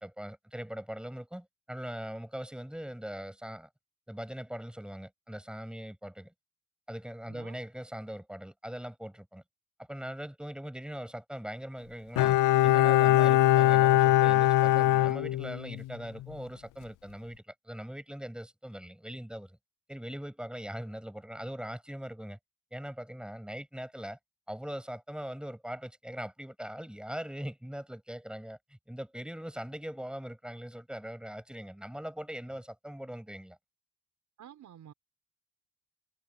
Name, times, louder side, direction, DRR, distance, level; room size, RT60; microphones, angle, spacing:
voice 1, 0.0-3.7 4.1-6.3 6.9-9.4 9.8-12.4 12.6-19.6 19.9-22.4 22.7-24.2 24.5-33.6, equal, 5° right, 7.2 m, -41 dB
voice 2, 7.3-7.6 34.4-34.9, right 10 dB, 75° right, 4.4 m, -50 dB
Bowed string instrument, 12.2-15.9 16.2-16.3, left 15 dB, 85° left, 0.5 m, -22 dB
cardioid pair, 135°, 31 cm